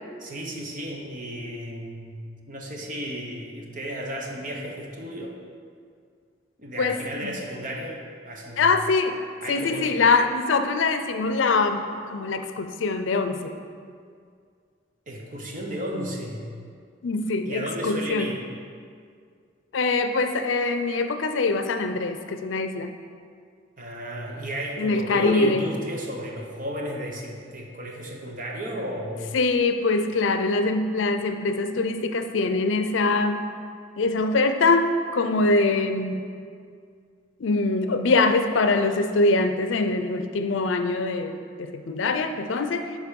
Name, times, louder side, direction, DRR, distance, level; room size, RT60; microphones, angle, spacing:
voice 1, 0.2-5.4 6.6-8.8 9.4-9.9 15.1-16.5 17.4-18.4 23.8-29.4, equal, 45° right, 0 dB, 1.1 m, -34 dB
voice 2, 6.8-7.3 8.6-9.2 9.5-13.5 17.0-18.3 19.7-22.9 24.8-25.6 29.3-33.5 34.0-36.3 37.4-43.0, left 3 dB, 85° left, 8 dB, 0.5 m, -23 dB
11.0 x 4.3 x 5.3 m, 2.2 s
head